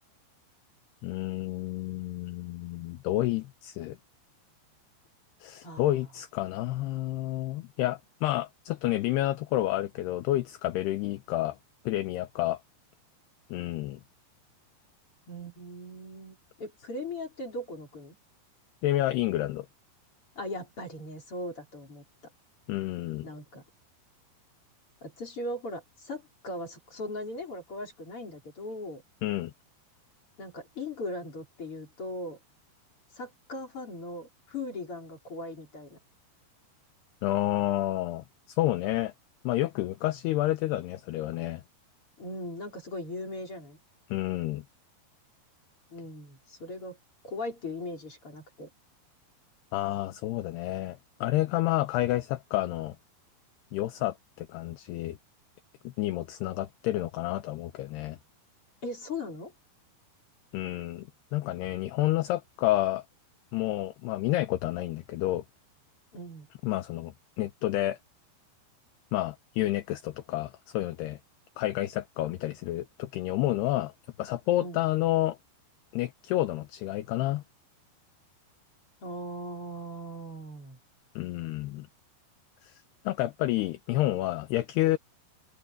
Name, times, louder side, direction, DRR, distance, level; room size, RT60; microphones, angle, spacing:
voice 1, 1.0-4.0 5.4-11.6 11.9-12.6 13.5-14.0 18.8-19.7 22.7-23.3 29.2-29.5 37.2-39.1 39.4-41.6 44.1-44.6 49.7-53.0 53.7-55.2 55.8-58.2 60.5-63.0 63.5-65.4 66.6-68.0 69.1-71.2 71.6-73.9 74.2-75.4 75.9-77.4 81.2-81.9 82.6-85.0, left 15 dB, 75° left, 2.6 m, -29 dB
voice 2, 5.6-6.0 15.3-18.1 20.3-22.0 23.2-23.6 25.0-29.0 30.4-32.4 33.1-36.0 42.2-43.8 45.9-47.0 47.2-48.7 58.8-59.5 66.1-66.5 74.6-74.8 79.0-80.8, left 1 dB, 30° left, 4.9 m, -39 dB
omnidirectional pair, 5.5 m